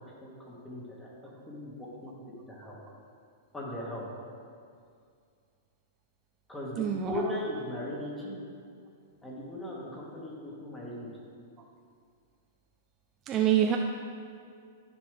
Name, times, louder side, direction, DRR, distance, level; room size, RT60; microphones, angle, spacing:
voice 1, 0.2-1.1 1.5-2.2 2.5-2.8 3.5-4.1 6.5-8.3 9.2-11.1, left 1 dB, 10° left, -5 dB, 1.9 m, -38 dB
voice 2, 6.8-7.3 13.3-13.8, right 10 dB, 25° right, 2 dB, 0.4 m, -26 dB
13.0 x 5.2 x 3.4 m, 2.3 s
hypercardioid pair, 145°, 0 cm